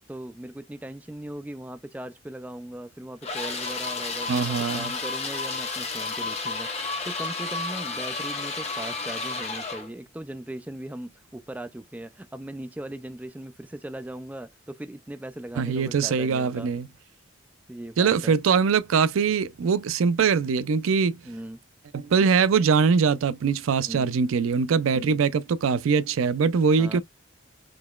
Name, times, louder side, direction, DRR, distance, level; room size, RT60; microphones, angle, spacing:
voice 1, 0.1-16.7 17.7-18.4 21.2-21.6 23.8-24.2 24.9-25.2 26.8-27.0, right 1 dB, 5° right, 0.3 m, -39 dB
sound 1, 3.2-9.9, left 3 dB, 30° left, 1.0 m, -31 dB
voice 2, 4.3-4.9 15.6-16.9 18.0-21.2 21.9-27.0, right 5 dB, 85° right, 0.4 m, -22 dB
3.8 x 2.9 x 2.2 m
head